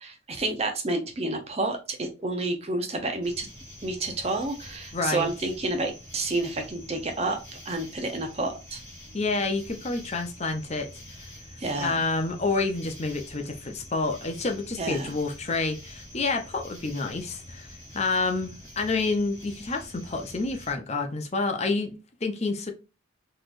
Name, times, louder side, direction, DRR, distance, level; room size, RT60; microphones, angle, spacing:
voice 1, 0.0-3.5 3.8-7.4 7.6-8.8 11.6-12.0 14.8-15.1, right 2 dB, 30° right, 0.8 m, -29 dB
sound 1, 3.2-20.7, left 1 dB, 10° left, 2.2 m, -46 dB
voice 2, 4.9-5.3 9.1-10.9 11.2-11.3 11.8-17.7 17.9-22.7, left 3 dB, 35° left, 0.6 m, -28 dB
3.9 x 3.2 x 2.5 m
head